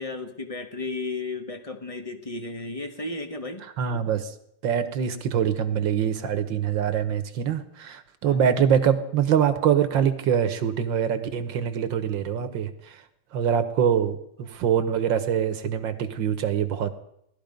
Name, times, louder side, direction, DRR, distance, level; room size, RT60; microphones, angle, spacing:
voice 1, 0.0-3.7 8.2-8.5, left 3 dB, 25° left, 6 dB, 0.7 m, -34 dB
voice 2, 3.8-4.3 4.6-13.0 13.3-16.9, right 8 dB, 65° right, 10 dB, 1.7 m, -24 dB
18.0 x 12.5 x 5.2 m, 0.76 s
omnidirectional pair, 2.3 m